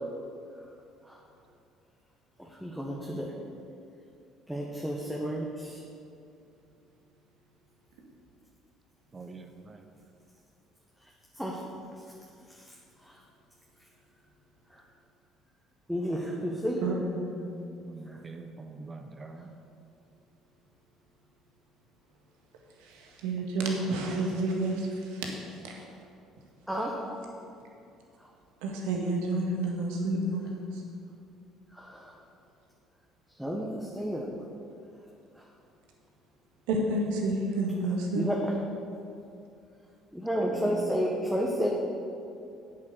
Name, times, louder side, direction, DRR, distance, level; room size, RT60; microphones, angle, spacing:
voice 1, 2.4-3.3 4.5-5.8 11.3-11.6 13.0-13.2 14.7-14.8 15.9-16.8 18.1-18.2 26.7-27.0 31.7-32.1 33.4-34.3 38.1-38.5 40.1-41.7, equal, ahead, -2 dB, 1.4 m, -31 dB
voice 2, 9.1-9.8 17.8-19.5 40.4-40.9, right 3 dB, 30° right, 5 dB, 0.8 m, -43 dB
voice 3, 16.8-17.3 22.9-25.3 25.6-25.7 28.6-30.6 36.7-38.3, right 2 dB, 85° right, 0 dB, 1.8 m, -30 dB
8.6 x 7.4 x 6.7 m, 2.6 s
supercardioid pair, 75°, 0 cm